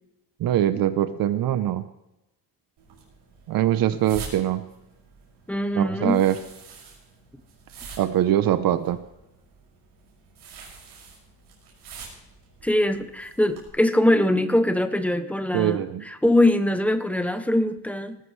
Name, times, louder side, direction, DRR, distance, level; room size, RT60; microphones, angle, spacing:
voice 1, 0.4-1.8 3.5-4.6 5.7-6.4 8.0-9.0 15.5-16.1, right 12 dB, 55° right, 13 dB, 0.7 m, -22 dB
sound 1, 2.8-13.7, right 5 dB, 80° right, 5.8 m, -46 dB
voice 2, 5.5-6.2 12.6-18.2, left 1 dB, 5° left, 9 dB, 0.6 m, -22 dB
19.0 x 13.5 x 3.2 m, 0.90 s
cardioid pair, 175°, 41 cm